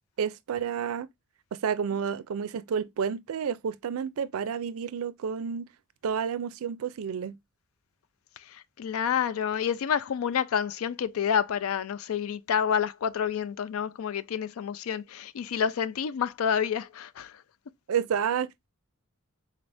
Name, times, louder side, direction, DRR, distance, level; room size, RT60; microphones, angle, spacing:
voice 1, 0.2-1.1 1.5-5.7 6.0-7.4 17.9-18.7, right 7 dB, 85° right, 0.4 m, -30 dB
voice 2, 8.8-17.3, left 8 dB, 80° left, 0.4 m, -28 dB
3.9 x 2.6 x 3.2 m
head